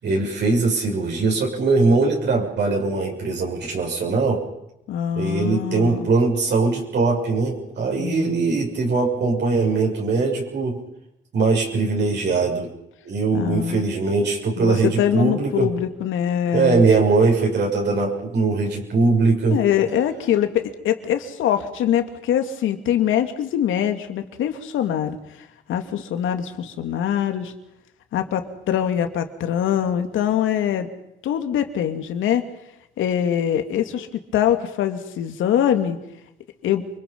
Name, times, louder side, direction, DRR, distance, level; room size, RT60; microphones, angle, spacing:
voice 1, 0.0-4.4 5.2-10.8 11.3-12.7 13.0-15.7 16.5-19.6, right 3 dB, 60° right, -1 dB, 6.7 m, -21 dB
voice 2, 4.9-6.1 8.0-8.4 13.3-13.8 14.6-16.8 19.5-25.2 25.7-27.5 28.1-30.9 31.2-32.4 33.0-36.0 36.6-36.8, left 10 dB, 80° left, 7 dB, 2.6 m, -23 dB
29.0 x 22.5 x 5.6 m, 0.85 s
cardioid pair, 90°, 20 cm